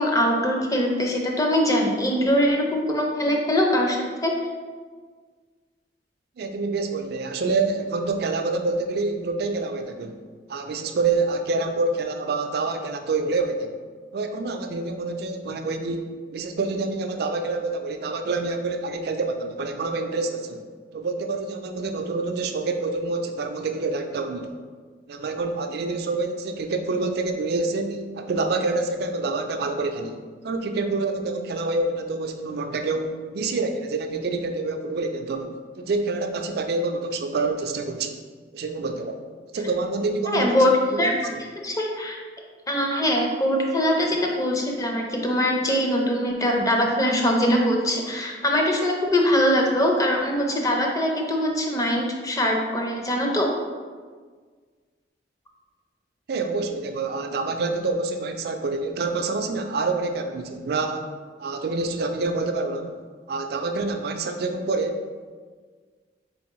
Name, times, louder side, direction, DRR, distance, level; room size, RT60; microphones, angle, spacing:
voice 1, 0.0-4.3 40.3-40.7 41.0-41.1 41.6-42.2 42.7-53.5, equal, 20° left, 0 dB, 0.5 m, -22 dB
voice 2, 6.4-10.2 10.5-13.8 14.1-16.1 16.3-20.7 20.9-24.6 25.1-30.2 30.4-38.2 38.5-39.2 39.5-40.7 40.9-41.4 56.3-61.1 61.4-63.0 63.3-65.3, right 3 dB, 60° right, 6 dB, 0.4 m, -27 dB
4.0 x 3.4 x 3.0 m, 1.5 s
head